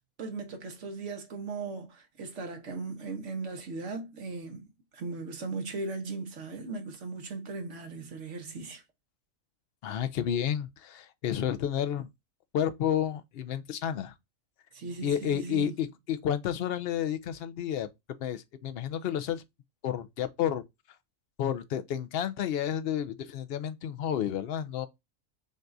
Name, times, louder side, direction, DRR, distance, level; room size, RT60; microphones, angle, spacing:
voice 1, 0.2-8.8 14.7-15.7, right 3 dB, 65° right, 1.3 m, -38 dB
voice 2, 9.8-12.1 12.5-14.1 15.0-17.9 18.2-19.4 19.8-20.6 21.4-24.9, left 9 dB, 60° left, 0.6 m, -31 dB
5.3 x 2.4 x 2.5 m
omnidirectional pair, 1.4 m